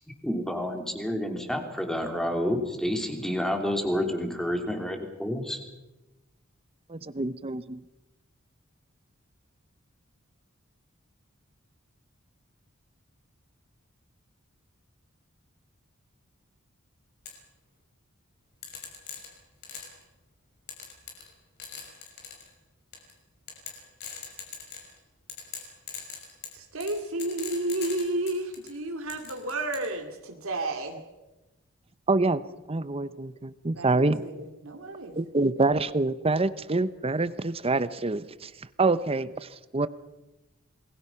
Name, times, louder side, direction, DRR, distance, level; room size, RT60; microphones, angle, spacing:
voice 1, 0.2-5.6, equal, ahead, 4 dB, 3.0 m, -29 dB
voice 2, 6.9-7.8 32.1-32.4 32.7-34.2 35.2-38.5 38.8-39.9, right 3 dB, 30° right, 15 dB, 0.8 m, -26 dB
sound 1, 17.2-17.4 18.6-20.0 20.7-21.3 21.6-22.5 22.9-23.1 23.5-25.0 25.3-28.7 29.1-29.9, left 7 dB, 50° left, 5.9 m, -40 dB
voice 3, 26.5-31.0 33.7-35.2, right 2 dB, 85° right, 3 dB, 2.6 m, -32 dB
28.0 x 21.0 x 5.8 m, 1.0 s
head